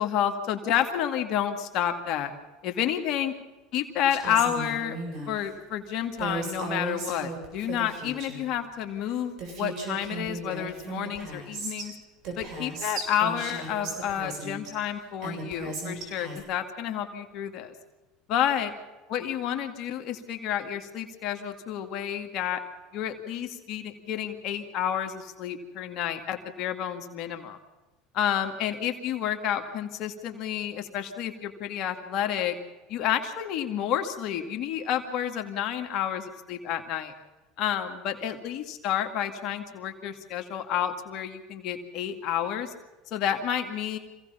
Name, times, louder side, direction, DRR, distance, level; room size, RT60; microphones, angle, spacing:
voice 1, 0.0-2.3 2.6-3.3 3.7-5.0 5.3-12.0 12.4-17.7 18.3-18.7 19.1-22.6 22.9-27.6 28.1-32.5 32.9-37.1 37.6-42.7 43.1-44.0, left 10 dB, 55° left, 5 dB, 2.3 m, -30 dB
Female speech woman speaking, 4.1-5.3 6.2-8.5 9.1-9.2 9.4-11.9 12.2-14.7 15.2-16.4, right 3 dB, 60° right, 7.4 m, -36 dB
26.5 x 17.0 x 5.8 m, 1.1 s
hypercardioid pair, 95°, 0 cm